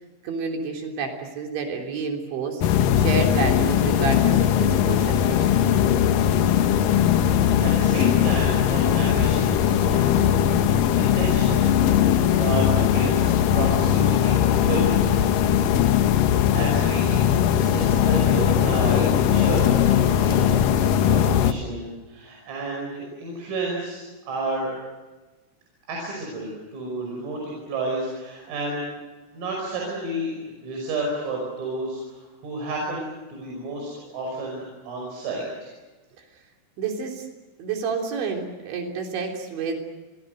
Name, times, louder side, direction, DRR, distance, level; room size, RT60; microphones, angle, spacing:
voice 1, 0.2-5.5 36.8-37.3 37.6-39.8, right 5 dB, 65° right, 2 dB, 5.6 m, -29 dB
sound 1, 2.6-21.5, left 9 dB, 90° left, 1.9 m, -20 dB
voice 2, 7.2-10.4 10.9-15.3 16.0-16.1 16.5-24.7 25.9-28.9 29.3-35.7, right 2 dB, 90° right, -1 dB, 8.3 m, -31 dB
30.0 x 24.0 x 6.6 m, 1.2 s
omnidirectional pair, 5.7 m